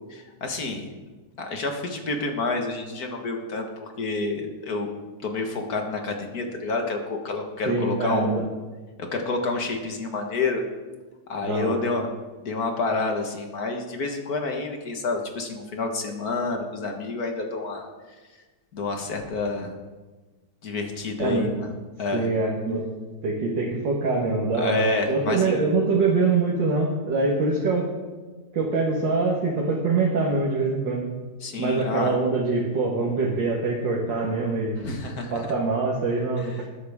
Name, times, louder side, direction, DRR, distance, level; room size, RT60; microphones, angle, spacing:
voice 1, 0.1-0.9 1.4-4.9 5.2-8.4 9.1-10.6 11.3-12.1 12.4-17.9 18.7-19.7 20.6-21.7 22.0-22.3 24.6-25.5 31.4-32.1 34.8-35.5, left 3 dB, 55° left, 3 dB, 2.0 m, -28 dB
voice 2, 7.7-8.4 11.4-11.8 21.2-21.5 22.1-22.8 23.2-27.9 28.5-31.1 31.6-34.8 35.3-36.7, right 3 dB, 85° right, -3 dB, 2.2 m, -24 dB
20.5 x 9.6 x 3.6 m, 1.3 s
omnidirectional pair, 1.9 m